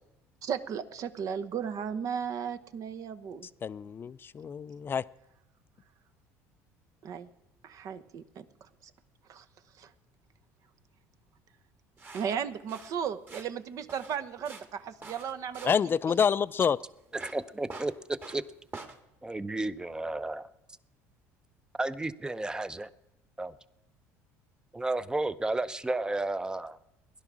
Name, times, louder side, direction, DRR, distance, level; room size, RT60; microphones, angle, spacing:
voice 1, 0.4-3.5 7.0-7.3 7.6-8.4 9.3-9.4 9.8-9.9 12.1-15.7, right 7 dB, 55° right, 0.9 m, -35 dB
voice 2, 3.6-5.0 15.6-16.8, left 7 dB, 30° left, 0.4 m, -27 dB
sound 1, 12.0-19.0, right 3 dB, 30° right, 1.8 m, -48 dB
voice 3, 17.1-18.4 19.2-20.5 21.8-22.9 23.4-23.5 24.7-26.8, right 2 dB, 10° right, 0.7 m, -32 dB
16.5 x 11.0 x 6.1 m
supercardioid pair, 85°, 7 cm